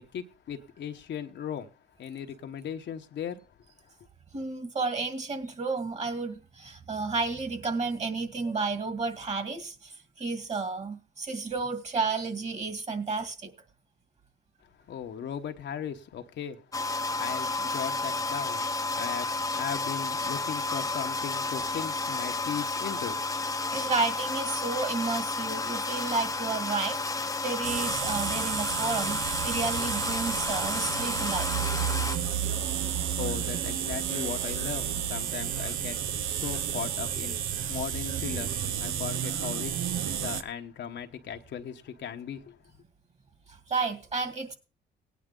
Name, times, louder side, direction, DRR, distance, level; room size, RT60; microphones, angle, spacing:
voice 1, 0.0-1.7 2.0-3.4 14.9-16.6 17.2-18.7 19.0-23.2 32.3-32.4 32.8-36.0 36.2-37.4 37.7-39.9 40.2-42.6, left 8 dB, 65° left, 1.1 m, -37 dB
voice 2, 4.3-13.5 23.7-31.5 43.7-44.5, right 4 dB, 35° right, 2.2 m, -32 dB
sound 1, 16.7-32.2, left 3 dB, 15° left, 0.8 m, -32 dB
sound 2, 27.6-40.4, right 9 dB, 85° right, 0.8 m, -31 dB
17.5 x 9.4 x 3.8 m
cardioid pair, 90°, 20 cm